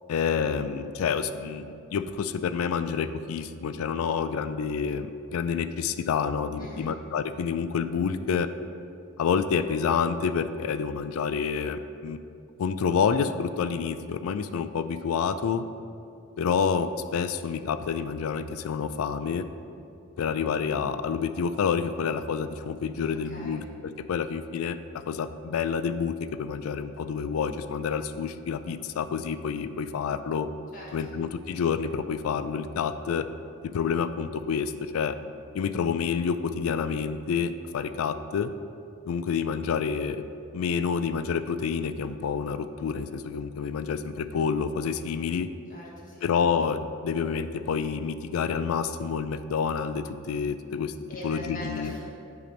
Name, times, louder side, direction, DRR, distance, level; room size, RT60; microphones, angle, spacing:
voice 1, 0.1-8.5 9.2-12.2 12.6-15.6 16.4-19.4 20.2-24.8 25.1-26.1 26.4-30.5 30.9-33.3 33.6-35.2 35.5-38.5 39.1-40.2 40.5-45.5 46.2-50.9 51.2-51.9, left 6 dB, 80° left, 11 dB, 0.3 m, -28 dB
voice 2, 6.6-6.9 23.0-23.6 30.7-31.1 45.7-46.2 51.1-52.0, left 1 dB, 40° left, -5 dB, 1.4 m, -42 dB
8.1 x 3.0 x 5.1 m, 2.5 s
head